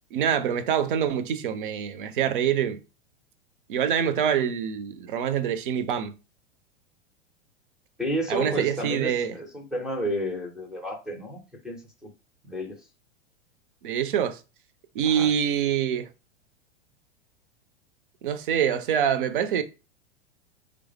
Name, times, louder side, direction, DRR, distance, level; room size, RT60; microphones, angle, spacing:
voice 1, 0.1-2.8 3.7-6.1 8.3-9.4 13.8-14.4 14.9-16.1 18.2-19.6, right 8 dB, 50° right, 0.5 m, -25 dB
voice 2, 8.0-12.1 12.4-12.8 15.0-15.3, equal, ahead, 0.5 m, -31 dB
3.2 x 2.0 x 3.3 m
figure-of-eight pair, 95°, 34 cm